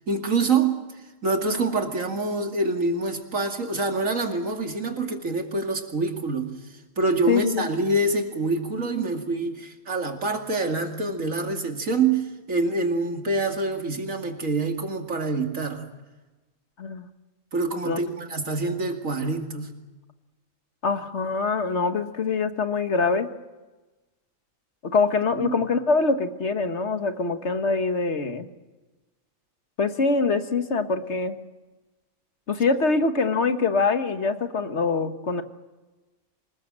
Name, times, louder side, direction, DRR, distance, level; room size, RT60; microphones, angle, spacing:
voice 1, 0.1-0.8 1.2-6.5 7.0-15.9 17.5-19.7 25.3-25.6, right 3 dB, 75° right, 4 dB, 2.8 m, -26 dB
voice 2, 7.3-7.7 16.8-17.1 17.8-18.0 20.8-23.3 24.8-28.5 29.8-31.3 32.5-35.4, left 4 dB, 55° left, 8 dB, 1.8 m, -24 dB
26.0 x 20.5 x 7.6 m, 1.2 s
omnidirectional pair, 1.4 m